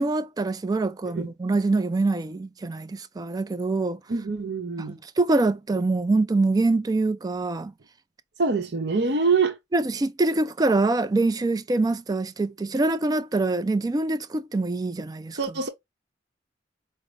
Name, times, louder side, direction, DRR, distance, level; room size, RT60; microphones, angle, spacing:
voice 1, 0.0-4.0 4.9-7.7 9.7-15.4, right 2 dB, 20° right, 0.3 m, -24 dB
voice 2, 4.1-5.0 8.4-9.6 15.4-15.7, right 4 dB, 65° right, 0.8 m, -24 dB
5.1 x 2.0 x 3.2 m
head